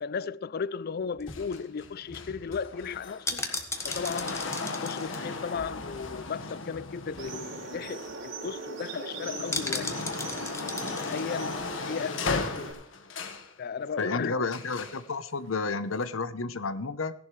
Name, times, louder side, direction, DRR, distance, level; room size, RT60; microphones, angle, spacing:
voice 1, 0.0-3.5 3.8-4.4 4.8-10.0 10.9-11.6 11.9-12.8 13.6-14.5, left 6 dB, 50° left, 0.4 m, -35 dB
sound 1, 1.0-6.4 6.7-6.8 7.1-7.4 7.7-7.8 8.1-8.5 9.5-11.2 11.6-11.7, left 3 dB, 15° left, 1.5 m, -37 dB
sound 2, 1.3-8.5 8.9-13.5 14.5-15.0 15.9-16.0, left 3 dB, 70° left, 1.5 m, -37 dB
sound 3, 7.2-12.7, right 2 dB, 70° right, 3.5 m, -40 dB
voice 2, 14.0-17.1, left 3 dB, 85° left, 0.9 m, -31 dB
17.0 x 11.5 x 3.2 m
head